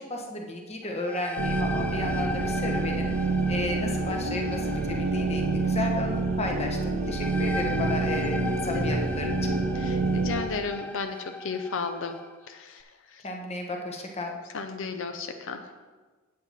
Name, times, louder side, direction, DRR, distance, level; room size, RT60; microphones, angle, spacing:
voice 1, 0.0-3.1 3.5-9.3 13.2-14.3, left 2 dB, 30° left, 1 dB, 1.1 m, -33 dB
sound 1, 0.8-12.3, left 2 dB, 5° left, 0.3 m, -38 dB
sound 2, 1.4-10.4, right 3 dB, 80° right, 0.8 m, -27 dB
voice 2, 8.7-9.0 9.8-12.2 12.5-12.8 14.5-15.6, left 4 dB, 60° left, 7 dB, 0.6 m, -34 dB
8.2 x 7.9 x 4.1 m, 1.3 s
head